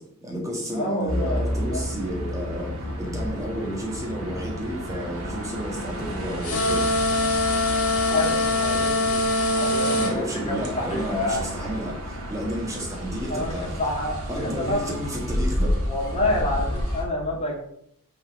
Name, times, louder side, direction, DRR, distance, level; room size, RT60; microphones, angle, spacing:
voice 1, 0.0-6.8 9.8-13.7 14.3-15.8, equal, 15° right, -1 dB, 1.6 m, -32 dB
voice 2, 0.7-1.8 8.1-11.8 13.3-15.0 15.9-17.6, left 1 dB, 25° left, -2 dB, 1.8 m, -29 dB
sound 1, 1.1-17.0, equal, 70° right, 1.5 m, -31 dB
sound 2, 6.4-10.1, left 2 dB, 85° left, 1.7 m, -23 dB
5.7 x 4.0 x 5.2 m, 0.72 s
head